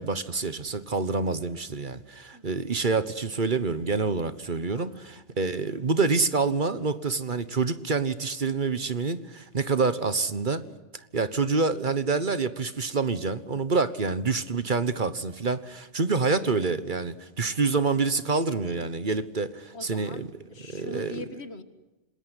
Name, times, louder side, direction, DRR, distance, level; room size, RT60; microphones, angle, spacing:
voice 1, 0.0-10.6 11.1-20.3 20.7-21.2, right 4 dB, 45° right, 13 dB, 1.3 m, -27 dB
voice 2, 4.8-5.2 17.5-17.6 19.7-20.3 20.5-21.6, left 2 dB, 65° left, 10 dB, 2.1 m, -42 dB
27.5 x 20.5 x 9.9 m, 1.1 s
omnidirectional pair, 1.2 m